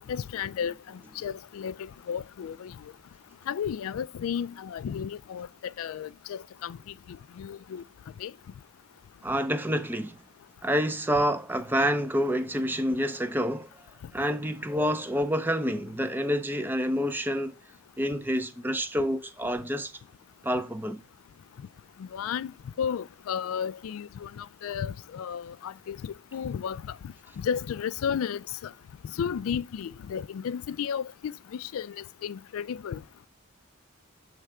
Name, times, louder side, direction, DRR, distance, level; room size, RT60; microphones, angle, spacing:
voice 1, 0.1-2.8 3.5-6.8 7.1-7.8 8.2-8.3 22.0-22.5 22.8-27.0 27.4-28.7 29.1-33.0, left 7 dB, 75° left, 0.3 m, -33 dB
voice 2, 9.2-10.2 10.6-13.7 14.1-17.6 18.0-19.9 20.4-21.0, equal, 10° right, 0.5 m, -28 dB
7.7 x 3.3 x 4.8 m
head